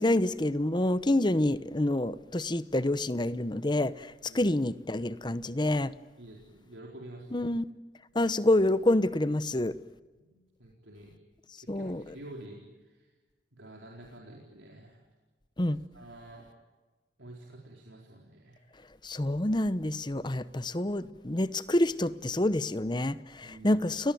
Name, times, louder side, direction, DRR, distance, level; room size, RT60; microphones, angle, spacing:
voice 1, 0.0-5.9 7.3-7.7 8.1-9.7 11.7-12.0 15.6-15.8 19.0-24.1, left 1 dB, 25° left, 0.8 m, -27 dB
voice 2, 4.2-4.6 6.2-7.5 10.3-11.1 11.6-13.1 13.5-15.0 15.9-16.5 17.2-18.6 23.4-23.8, right 1 dB, 90° right, 4.5 m, -49 dB
30.0 x 19.5 x 9.3 m
head